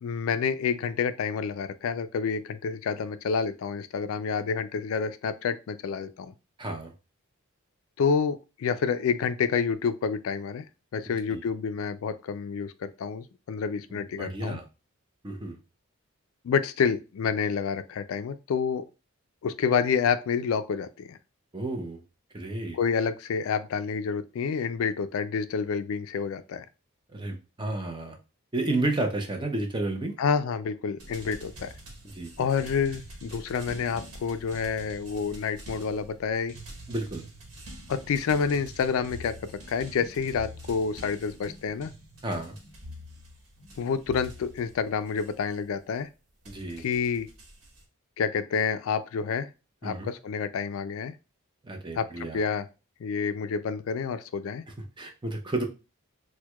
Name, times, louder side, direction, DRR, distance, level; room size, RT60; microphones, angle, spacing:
voice 1, 0.0-6.3 8.0-10.6 10.9-14.6 16.4-18.8 19.4-21.2 22.7-26.7 30.2-31.7 32.4-36.5 37.9-39.4 39.7-41.9 43.8-46.1 46.8-47.3 48.2-49.5 49.8-51.1 51.9-52.7 53.0-54.6, left 6 dB, 65° left, 12 dB, 0.3 m, -28 dB
voice 2, 6.6-6.9 11.3-11.4 13.9-14.6 15.2-15.6 21.5-22.0 22.3-22.8 27.1-28.2 28.5-30.2 32.1-32.5 36.9-37.3 42.2-42.6 46.5-46.8 49.8-50.1 51.6-52.4 54.8-55.6, right 2 dB, 20° right, 3 dB, 0.5 m, -32 dB
sound 1, 31.0-45.8 46.4-47.8, equal, 85° right, 1.1 m, -46 dB
4.5 x 2.1 x 2.2 m, 0.30 s
head